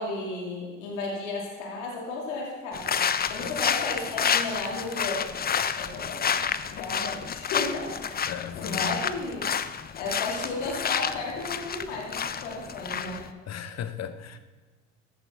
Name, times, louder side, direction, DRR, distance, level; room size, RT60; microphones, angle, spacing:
voice 1, 0.0-2.9 3.3-5.3 5.8-6.3 6.7-9.5 9.9-13.3, left 3 dB, 80° left, -2 dB, 2.5 m, -34 dB
sound 1, 2.7-13.3, left 7 dB, 25° left, 0.6 m, -30 dB
voice 2, 8.3-9.0 13.5-14.4, left 8 dB, 45° left, 10 dB, 1.0 m, -36 dB
14.5 x 8.1 x 3.5 m, 1.3 s
hypercardioid pair, 60°, 36 cm